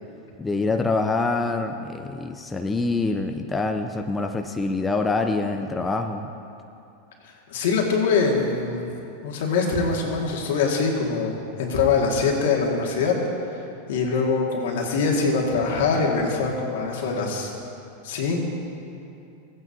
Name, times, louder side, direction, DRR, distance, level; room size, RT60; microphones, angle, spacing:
voice 1, 0.4-6.3, left 3 dB, 15° left, 5 dB, 0.5 m, -25 dB
voice 2, 7.5-8.9 9.2-13.2 13.5-13.6 13.9-17.5 18.0-18.4, left 4 dB, 75° left, -1 dB, 1.9 m, -23 dB
16.5 x 9.0 x 2.7 m, 2.7 s
hypercardioid pair, 110°, 0 cm